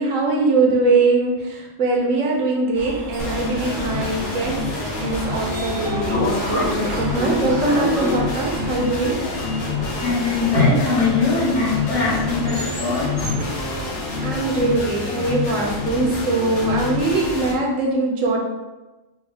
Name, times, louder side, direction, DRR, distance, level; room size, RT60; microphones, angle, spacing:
voice 1, 0.0-4.7 5.0-9.2 14.2-18.4, right 3 dB, 85° right, 0 dB, 1.1 m, -22 dB
sound 1, 2.7-13.8, right 2 dB, 60° right, 0.8 m, -34 dB
sound 2, 3.2-17.5, left 3 dB, 90° left, 1.1 m, -27 dB
Sliding door, 4.9-15.1, left 2 dB, 40° left, 1.3 m, -30 dB
voice 2, 10.0-13.3, left 3 dB, 60° left, -9 dB, 1.4 m, -21 dB
3.5 x 2.1 x 3.3 m, 1.1 s
omnidirectional pair, 1.3 m